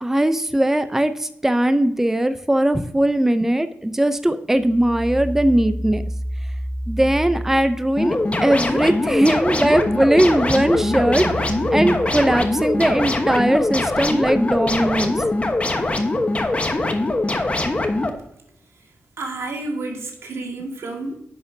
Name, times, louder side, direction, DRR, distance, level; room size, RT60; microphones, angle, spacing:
voice 1, 0.0-6.0 6.9-8.2 8.4-15.2, right 1 dB, 10° right, 10 dB, 0.5 m, -19 dB
sound 1, 4.6-8.5 8.9-13.4, right 1 dB, 45° right, 1.8 m, -32 dB
sound 2, 8.0-18.1, left 2 dB, 30° left, 1.1 m, -22 dB
voice 2, 19.2-21.2, right 2 dB, 85° right, 2 dB, 1.8 m, -30 dB
10.5 x 7.1 x 2.7 m, 0.74 s
cardioid pair, 85°, 5 cm